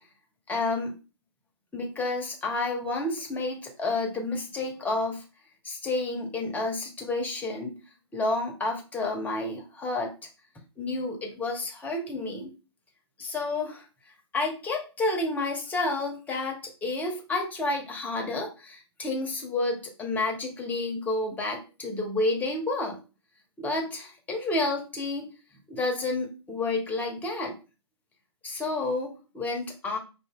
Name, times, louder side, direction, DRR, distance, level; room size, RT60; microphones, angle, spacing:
voice 1, 0.5-0.9 1.7-5.2 5.6-7.8 8.1-10.1 10.8-12.5 13.2-13.9 14.3-23.0 23.6-25.3 25.7-27.6 28.4-30.0, left 2 dB, 10° left, 2 dB, 1.0 m, -30 dB
5.3 x 2.8 x 3.6 m, 0.32 s
hypercardioid pair, 130°, 15 cm